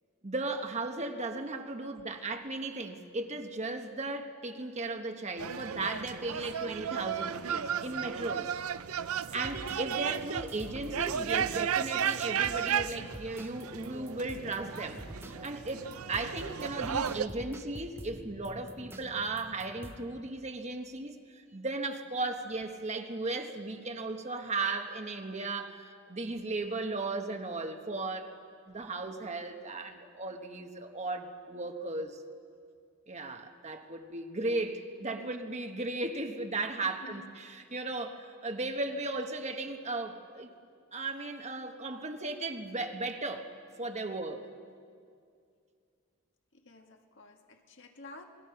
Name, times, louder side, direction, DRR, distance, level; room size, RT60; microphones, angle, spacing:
voice 1, 0.2-8.6 9.3-28.3 28.7-32.2 33.1-40.5 40.9-43.5 43.8-44.5, right 2 dB, 30° right, 5 dB, 1.2 m, -36 dB
sound 1, 5.4-17.3, right 8 dB, 75° right, 0.6 m, -34 dB
sound 2, 9.2-20.3, right 1 dB, 10° right, 0.7 m, -47 dB
voice 2, 36.8-37.3 46.5-48.2, left 2 dB, 55° left, 4 dB, 1.8 m, -51 dB
28.0 x 20.5 x 5.8 m, 2.3 s
head